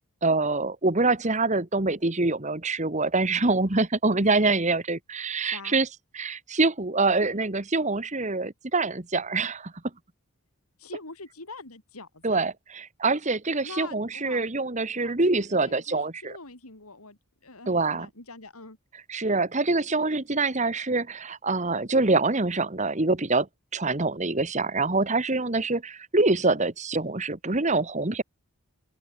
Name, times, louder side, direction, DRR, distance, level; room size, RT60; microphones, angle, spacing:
voice 1, 0.2-5.9 6.1-9.7 12.2-16.3 17.7-18.1 19.1-23.5 23.7-28.2, right 3 dB, 35° right, 1.5 m, -25 dB
voice 2, 5.4-5.8 10.8-12.4 13.6-14.4 15.0-18.8, left 3 dB, 85° left, 4.5 m, -44 dB
open air
head